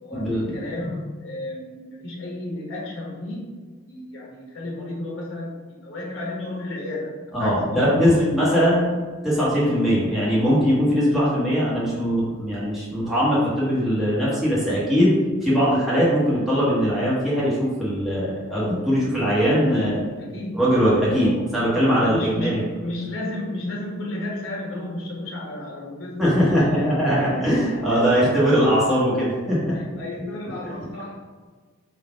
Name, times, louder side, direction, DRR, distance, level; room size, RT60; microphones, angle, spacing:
voice 1, 0.0-8.2 19.5-20.7 21.2-21.6 21.9-28.5 29.7-31.3, left 1 dB, 75° left, -3 dB, 1.3 m, -33 dB
voice 2, 7.3-8.9 9.2-15.1 15.4-19.9 20.5-22.6 26.2-29.7 30.6-30.7, equal, ahead, -10 dB, 1.3 m, -20 dB
4.0 x 2.6 x 4.7 m, 1.5 s
head